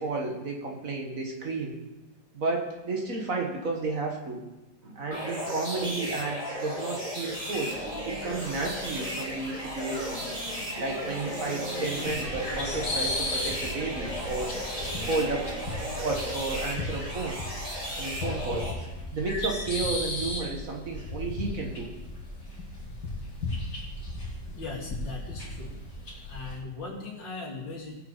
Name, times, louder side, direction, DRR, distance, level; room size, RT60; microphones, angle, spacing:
voice 1, 0.0-1.8 2.3-4.4 4.8-7.8 8.1-10.4 10.8-14.5 15.0-15.5 16.0-17.4 18.0-18.7 19.1-21.9, right 3 dB, 50° right, 1 dB, 1.9 m, -32 dB
sound 1, 5.1-18.7, equal, 20° right, 2.5 m, -35 dB
sound 2, 7.6-17.0, equal, 80° right, 3.9 m, -42 dB
sound 3, 12.0-26.6, left 2 dB, 60° left, 3.3 m, -35 dB
voice 2, 24.6-25.8 26.2-27.9, left 3 dB, 85° left, -4 dB, 3.7 m, -39 dB
20.0 x 6.9 x 4.1 m, 1.0 s
omnidirectional pair, 2.0 m